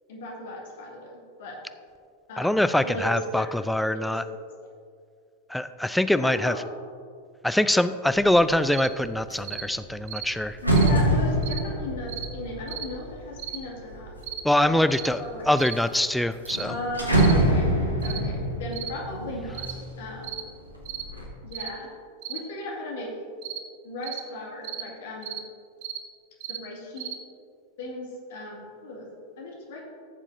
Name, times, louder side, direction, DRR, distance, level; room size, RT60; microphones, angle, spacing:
voice 1, 0.1-1.6 2.3-4.4 6.1-6.7 10.6-14.1 14.6-14.8 15.2-15.5 16.6-17.7 18.0-20.4 21.4-21.9 22.3-23.2 23.8-25.4 26.5-27.1 27.8-29.1 29.4-29.8, left 1 dB, 55° left, -2 dB, 2.2 m, -37 dB
voice 2, 2.4-4.2 5.5-6.5 7.4-10.6 14.4-15.2 15.5-16.7, left 1 dB, 5° left, 12 dB, 0.3 m, -23 dB
sound 1, 8.2-8.6 9.0-14.3 14.9-15.6 15.9-16.0 16.3-20.2 20.6-21.2, right 1 dB, 85° right, 1.7 m, -25 dB
sound 2, 8.7-8.9 9.4-9.7 10.1-10.3 10.7-10.9 11.4-11.6 12.1-12.3 12.7-12.9 13.4-13.6 14.2-14.4 14.9-15.1 15.6-15.8 16.5-16.7 17.1-17.4 18.0-18.2 18.7-18.9 19.5-19.8 20.2-20.5 20.9-21.1 21.5-21.7 22.2-22.4 23.4-23.6 24.0-24.2 24.6-24.9 25.2-25.4 25.8-26.0 26.4-26.6 27.0-27.2, right 11 dB, 50° right, 0.7 m, -36 dB
15.0 x 7.2 x 2.7 m, 2.3 s
figure-of-eight pair, 90°, 0 cm